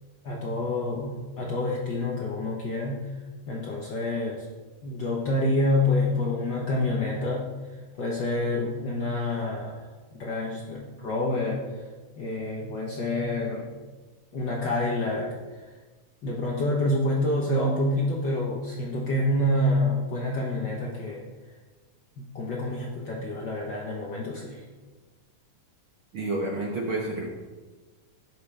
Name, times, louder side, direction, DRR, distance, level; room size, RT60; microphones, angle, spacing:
voice 1, 0.2-3.1 3.5-4.5 4.8-7.5 8.0-9.9 10.1-11.6 12.2-13.7 14.3-15.3 16.2-21.2 22.2-24.6, left 1 dB, 85° left, -3 dB, 1.0 m, -27 dB
voice 2, 26.1-27.3, right 2 dB, 60° right, -2 dB, 1.4 m, -29 dB
17.0 x 6.1 x 3.4 m, 1.3 s
omnidirectional pair, 3.7 m